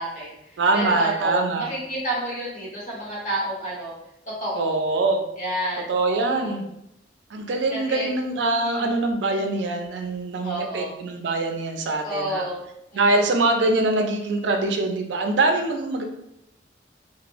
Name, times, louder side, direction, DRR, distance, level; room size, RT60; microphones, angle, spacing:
voice 1, 0.0-3.9 4.3-4.8 5.4-6.6 7.7-8.1 8.4-8.9 10.4-10.9 12.0-12.6 12.9-13.0, right 1 dB, 45° left, -6 dB, 1.2 m, -30 dB
voice 2, 0.6-1.7 4.5-5.2 5.9-6.6 7.3-12.5 12.9-16.0, right 2 dB, 80° right, 4 dB, 0.4 m, -23 dB
3.0 x 2.0 x 2.5 m, 0.80 s
head